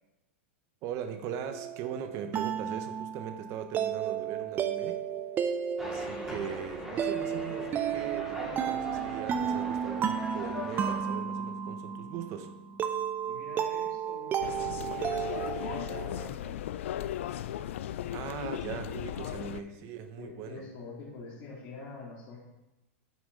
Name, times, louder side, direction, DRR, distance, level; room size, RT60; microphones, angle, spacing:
voice 1, 0.8-5.0 5.8-12.5 18.1-20.6, right 8 dB, 45° right, 8 dB, 1.0 m, -40 dB
sound 1, 1.5-16.3, right 8 dB, 25° right, 0.5 m, -33 dB
sound 2, 5.8-11.0, left 1 dB, 5° right, 2.8 m, -41 dB
voice 2, 13.3-16.6 19.5-22.4, left 3 dB, 50° left, -6 dB, 2.6 m, -47 dB
sound 3, 14.4-19.6, left 11 dB, 70° left, 0.4 m, -36 dB
9.5 x 5.7 x 3.9 m, 0.97 s
hypercardioid pair, 115°, 7 cm